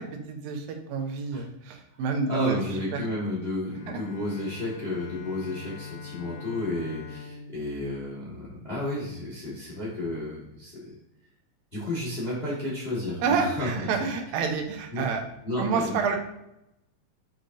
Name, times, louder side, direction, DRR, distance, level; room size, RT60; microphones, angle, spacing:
voice 1, 0.0-2.6 2.9-3.0 3.9-4.0 13.2-15.2 15.6-16.2, right 5 dB, 85° right, 4 dB, 2.5 m, -28 dB
voice 2, 2.3-10.9 11.7-13.7 14.9-15.0 15.4-16.2, left 1 dB, 35° left, -6 dB, 0.9 m, -32 dB
Bowed string instrument, 3.6-9.1, left 4 dB, 15° left, 1.5 m, -43 dB
6.6 x 6.2 x 2.6 m, 0.86 s
omnidirectional pair, 4.0 m